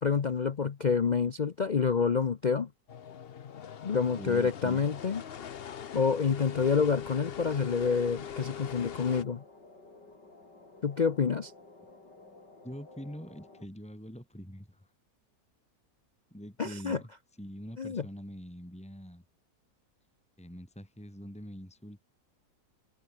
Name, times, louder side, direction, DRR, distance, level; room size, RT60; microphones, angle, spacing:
voice 1, 0.0-2.7 3.8-5.2 5.9-9.4 10.8-11.5 16.6-17.0 17.8-18.0, left 6 dB, 90° left, 0.4 m, -28 dB
sound 1, 2.9-9.2, left 8 dB, 50° left, 0.7 m, -42 dB
voice 2, 4.2-4.9 12.6-14.9 16.3-19.2 20.4-22.1, equal, 5° left, 4.0 m, -44 dB
sound 2, 8.0-13.7, left 2 dB, 70° left, 6.5 m, -54 dB
omnidirectional pair, 1.9 m